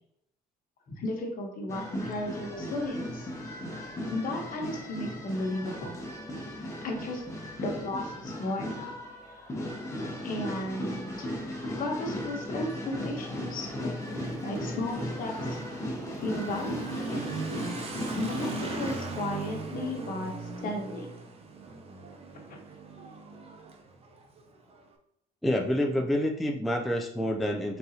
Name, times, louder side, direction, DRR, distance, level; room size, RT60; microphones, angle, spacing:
voice 1, 1.0-3.3 4.0-6.0 6.8-7.2 7.6-9.0 10.2-11.3 11.8-13.7 14.4-15.6 16.2-17.4 18.1-20.3 20.6-21.1 22.5-22.6, left 1 dB, 55° left, 2 dB, 1.1 m, -34 dB
sound 1, 1.7-19.0, left 1 dB, 15° left, 1.0 m, -37 dB
Drum, 10.0-11.3 13.8-16.8 19.8-22.6, left 3 dB, 85° left, 1.3 m, -49 dB
Motorcycle / Accelerating revving vroom, 12.5-24.8, right 3 dB, 35° right, 0.7 m, -40 dB
voice 2, 25.4-27.8, left 1 dB, ahead, 1 dB, 0.4 m, -28 dB
3.9 x 3.9 x 2.8 m, 0.78 s
cardioid pair, 110°, 17 cm